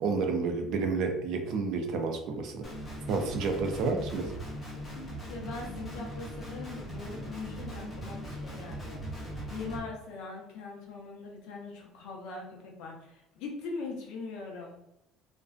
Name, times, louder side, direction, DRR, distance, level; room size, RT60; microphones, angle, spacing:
voice 1, 0.0-2.7 3.1-4.3, right 4 dB, 50° right, 4 dB, 0.4 m, -30 dB
Guitar, 2.6-9.8, equal, 15° left, 0.6 m, -40 dB
voice 2, 5.3-9.2 9.5-14.7, left 3 dB, 70° left, 0 dB, 0.7 m, -41 dB
2.5 x 2.2 x 2.4 m, 0.84 s
cardioid pair, 175°, 0 cm